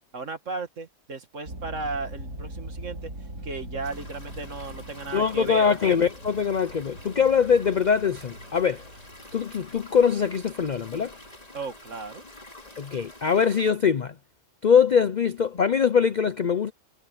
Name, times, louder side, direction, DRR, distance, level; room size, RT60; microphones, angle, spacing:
voice 1, 0.1-3.1 3.4-5.6 11.5-12.2, right 4 dB, 55° right, 2.2 m, -35 dB
sound 1, 1.5-12.5, right 1 dB, 75° right, 6.0 m, -42 dB
sound 2, 3.8-13.7, left 1 dB, 25° left, 2.6 m, -47 dB
voice 2, 5.1-8.8 9.3-11.1 12.8-14.2 14.6-16.7, left 6 dB, 65° left, 0.4 m, -22 dB
omnidirectional pair, 1.6 m